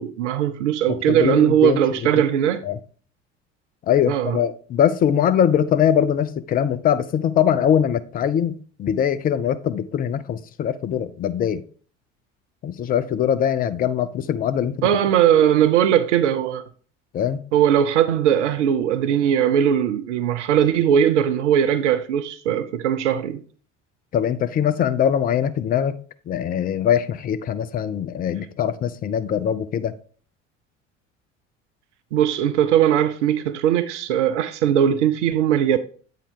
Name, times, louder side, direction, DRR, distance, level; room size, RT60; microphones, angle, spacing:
voice 1, 0.0-2.6 4.1-4.4 14.8-16.6 17.5-23.4 32.1-35.8, right 9 dB, 70° right, 0.5 m, -19 dB
voice 2, 0.9-1.8 2.7-2.8 3.9-11.6 12.6-14.9 17.1-17.4 24.1-26.0 26.3-29.9, left 9 dB, 25° left, 0.4 m, -22 dB
8.3 x 3.6 x 3.5 m
figure-of-eight pair, 60°, 37 cm